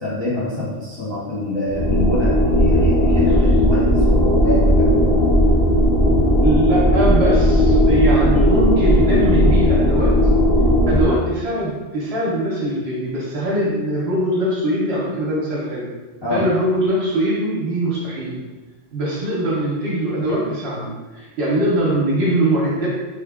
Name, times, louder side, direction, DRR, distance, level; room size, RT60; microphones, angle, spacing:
voice 1, 0.0-5.2 16.2-16.4, left 1 dB, 30° left, -9 dB, 0.5 m, -25 dB
sound 1, 1.7-11.0, equal, 55° left, 0.9 m, -16 dB
voice 2, 6.4-10.2 10.9-15.9 16.3-18.4 18.9-22.9, right 1 dB, 55° right, -4 dB, 0.9 m, -21 dB
3.2 x 2.2 x 3.5 m, 1.2 s
omnidirectional pair, 1.3 m